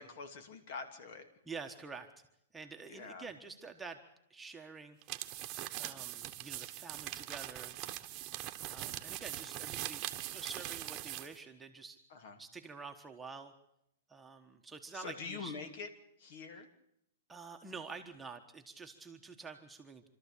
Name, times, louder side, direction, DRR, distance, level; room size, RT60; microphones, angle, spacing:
voice 1, 0.0-1.3 2.9-3.3 12.1-12.4 14.9-15.9 16.2-16.7, left 4 dB, 55° left, 8 dB, 2.7 m, -45 dB
voice 2, 1.4-2.1 2.5-4.0 4.3-5.5 5.7-7.8 8.6-10.0 10.3-13.5 14.1-15.6 17.3-20.1, right 4 dB, 10° right, 3 dB, 1.4 m, -48 dB
sound 1, 5.0-11.4, right 15 dB, 30° right, 1.2 m, -42 dB
26.5 x 13.5 x 8.5 m, 0.79 s
hypercardioid pair, 145°, 0 cm